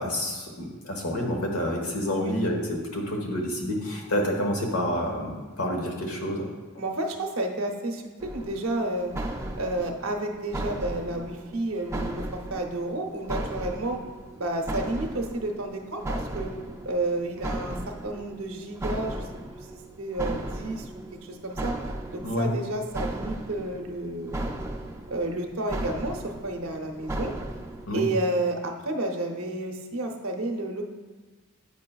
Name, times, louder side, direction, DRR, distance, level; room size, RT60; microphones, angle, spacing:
voice 1, 0.0-6.5 22.2-22.5 27.8-28.1, equal, 85° left, 1 dB, 1.1 m, -28 dB
voice 2, 6.8-9.2 9.6-14.0 14.3-16.5 16.8-19.2 19.5-19.7 20.0-21.8 22.1-24.6 25.1-27.3 27.9-30.8, right 2 dB, 70° right, 3 dB, 0.7 m, -31 dB
sound 1, 8.2-27.9, right 1 dB, 15° right, 0.3 m, -36 dB
8.4 x 5.5 x 2.3 m, 1.3 s
head